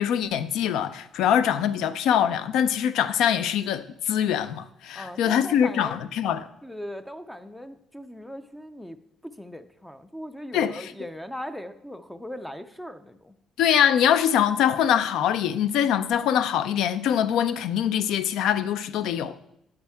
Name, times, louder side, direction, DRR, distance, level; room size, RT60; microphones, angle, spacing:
voice 1, 0.0-6.4 10.5-10.7 13.6-19.3, left 9 dB, 75° left, 0.4 m, -23 dB
voice 2, 4.9-6.0 6.6-9.0 9.2-13.3, equal, 5° left, 0.3 m, -39 dB
8.7 x 7.7 x 3.5 m
cardioid pair, 170°, 0 cm